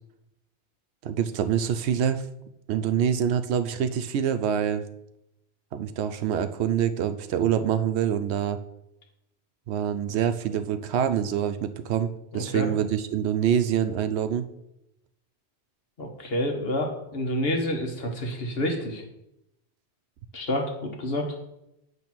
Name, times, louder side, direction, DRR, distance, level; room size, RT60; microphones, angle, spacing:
voice 1, 1.0-2.2 2.7-4.8 5.7-8.6 9.7-12.1 12.3-14.5, right 9 dB, 75° right, 10 dB, 0.8 m, -25 dB
voice 2, 12.3-12.7 16.0-19.0 20.3-21.4, left 1 dB, 60° left, 2 dB, 1.4 m, -28 dB
8.7 x 3.2 x 6.1 m, 0.84 s
omnidirectional pair, 1.1 m